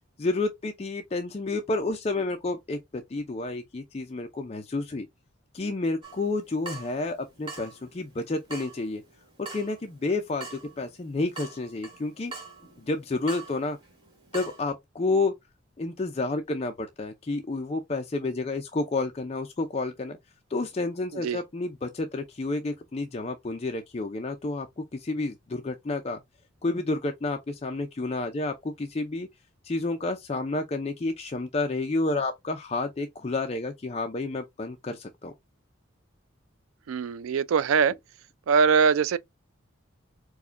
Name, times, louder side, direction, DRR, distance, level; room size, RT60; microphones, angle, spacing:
voice 1, 0.2-5.1 5.5-9.0 9.4-12.3 12.8-13.8 14.3-15.3 15.8-20.2 20.5-26.2 26.6-29.3 29.6-35.3, left 2 dB, 30° left, 0.4 m, -30 dB
Water tap faucet / Drip, 6.0-14.6, right 3 dB, 25° right, 1.1 m, -45 dB
voice 2, 36.9-37.9 38.5-39.2, right 6 dB, 85° right, 0.4 m, -22 dB
4.7 x 2.1 x 2.5 m
head